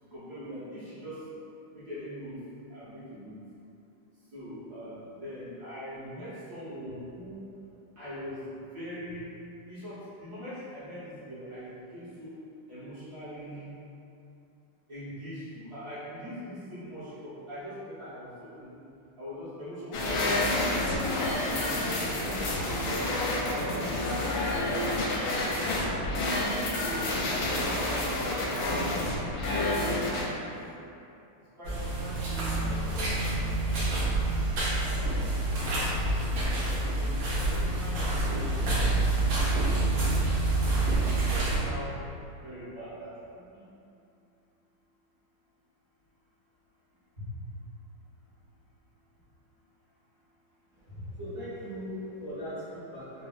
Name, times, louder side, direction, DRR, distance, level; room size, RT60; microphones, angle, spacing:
voice 1, 0.1-1.2 1.7-2.4 2.7-3.4 4.3-7.4 7.9-8.4 8.7-9.3 9.7-12.3 12.7-13.8 14.9-18.8 19.2-20.8 21.1-23.1 23.4-25.2 25.6-25.8 26.4-29.7 31.5-34.1 34.8-35.4 36.3-38.9 39.2-39.9 40.8-41.9 42.4-43.6 47.2-47.4 50.9-51.0, equal, 45° right, -15 dB, 1.5 m, -42 dB
sound 1, 19.9-30.2, left 1 dB, 75° left, 1.1 m, -29 dB
sound 2, 31.6-41.6, right 2 dB, 70° right, 1.6 m, -27 dB
voice 2, 50.7-53.3, equal, 55° left, -14 dB, 0.3 m, -40 dB
4.4 x 2.1 x 2.4 m, 2.7 s
omnidirectional pair, 2.3 m